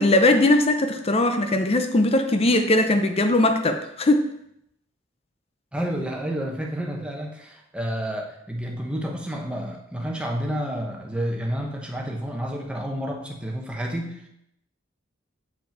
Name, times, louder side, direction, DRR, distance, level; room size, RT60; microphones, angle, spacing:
voice 1, 0.0-4.3, left 1 dB, 30° left, 7 dB, 0.5 m, -20 dB
voice 2, 5.7-14.3, equal, 5° right, 0 dB, 1.0 m, -30 dB
7.3 x 5.2 x 4.6 m, 0.77 s
head